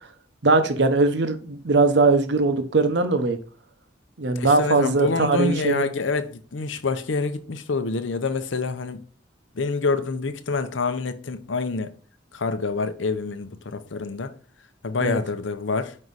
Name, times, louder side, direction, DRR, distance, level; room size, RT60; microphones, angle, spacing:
voice 1, 0.4-3.4 4.2-5.8 15.0-15.2, right 3 dB, 65° right, 0.8 m, -20 dB
voice 2, 4.3-9.0 9.5-11.9 12.3-14.3 14.8-16.0, left 4 dB, 80° left, 0.7 m, -27 dB
5.4 x 4.7 x 4.0 m
head